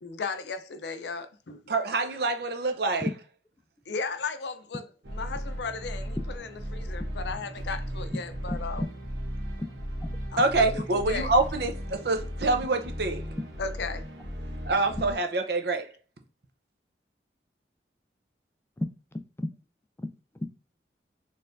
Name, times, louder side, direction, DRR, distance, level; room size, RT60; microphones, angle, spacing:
voice 1, 0.0-1.6 3.9-8.8 10.3-11.3 13.6-14.1, left 4 dB, 75° left, 0.5 m, -36 dB
voice 2, 1.7-3.1 10.4-13.2 14.7-15.9, right 3 dB, 65° right, 0.7 m, -26 dB
sound 1, 5.0-15.1, equal, 80° right, 1.2 m, -36 dB
voice 3, 8.5-8.9 9.6-9.7 18.8-19.5 20.0-20.1 20.4-20.5, left 1 dB, 15° left, 0.3 m, -33 dB
4.4 x 3.2 x 2.5 m
head